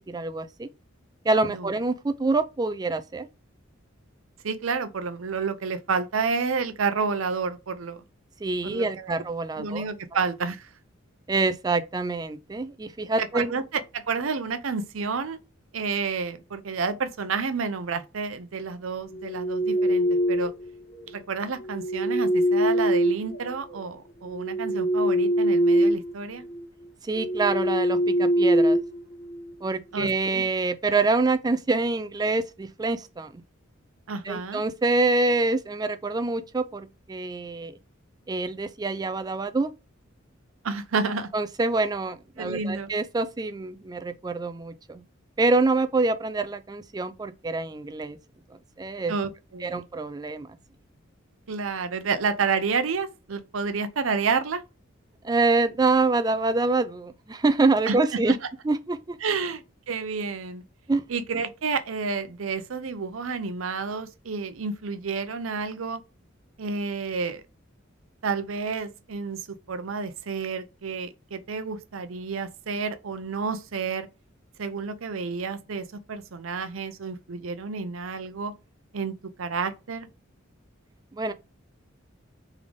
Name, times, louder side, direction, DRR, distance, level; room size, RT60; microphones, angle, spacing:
voice 1, 0.1-0.7 1.2-3.3 8.4-9.8 11.3-13.5 27.0-28.8 29.6-33.4 34.2-37.8 38.3-39.7 41.3-45.0 45.4-48.2 48.8-49.1 49.6-50.5 55.2-58.4 58.6-59.2 60.9-61.0 81.1-81.3, right 3 dB, 20° right, 0.4 m, -26 dB
voice 2, 4.4-8.0 8.6-9.2 9.6-10.7 13.3-15.4 15.7-20.5 21.1-26.5 29.9-30.4 34.1-34.6 40.6-41.3 42.4-42.9 49.1-49.8 51.5-54.6 57.9-58.0 58.3-58.4 59.2-60.6 61.1-66.0 66.6-67.4 68.2-74.1 74.6-78.5 78.9-80.1, right 5 dB, 90° right, 0.6 m, -30 dB
sound 1, 19.2-20.7 21.7-23.8 24.3-26.1 26.4-26.7 27.2-29.5, right 1 dB, 80° left, 1.4 m, -23 dB
3.7 x 3.4 x 3.5 m
head